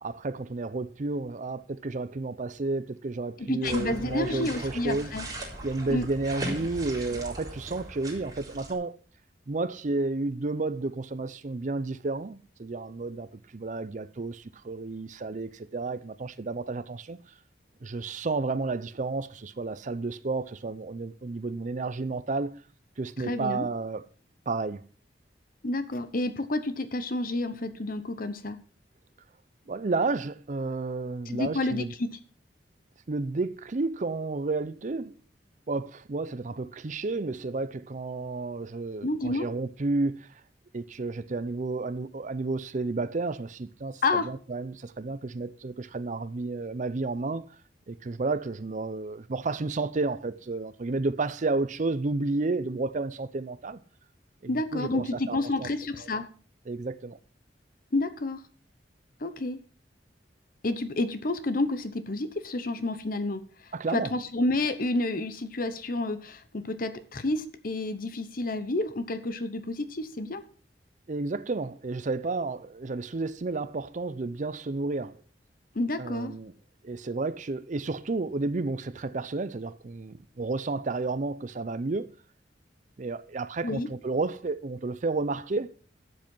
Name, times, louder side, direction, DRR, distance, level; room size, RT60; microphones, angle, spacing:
voice 1, 0.0-5.1 5.6-9.0 9.5-17.3 17.8-22.6 23.0-24.0 24.5-24.8 29.7-31.9 33.1-35.2 35.7-40.4 40.7-47.5 47.9-53.8 54.4-55.7 56.0-56.1 56.7-57.2 63.7-64.1 71.1-75.2 76.0-76.5 76.8-82.1 83.0-85.7, right 3 dB, 45° right, 0.5 m, -31 dB
voice 2, 3.4-5.3 5.9-6.1 23.2-23.6 25.6-28.6 31.3-32.2 39.0-39.5 44.0-44.3 54.5-56.3 57.9-58.4 59.2-59.6 60.6-70.4 75.7-76.3 83.6-83.9, left 2 dB, 50° left, 0.9 m, -30 dB
sound 1, 3.6-8.7, right 1 dB, 20° right, 3.9 m, -39 dB
12.0 x 7.4 x 5.4 m
head